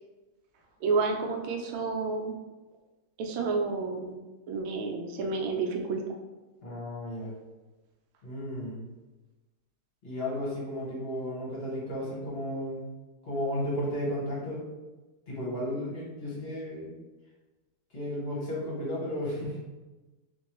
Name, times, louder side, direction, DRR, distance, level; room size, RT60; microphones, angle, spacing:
voice 1, 0.8-2.3 3.2-4.2 4.5-6.0, right 4 dB, 80° right, 2 dB, 1.3 m, -30 dB
voice 2, 6.6-7.3 8.2-8.8 10.0-12.9 13.2-14.6 15.3-16.9 17.9-19.7, left 1 dB, 40° left, -7 dB, 0.9 m, -34 dB
3.7 x 2.6 x 3.0 m, 1.2 s
omnidirectional pair, 2.3 m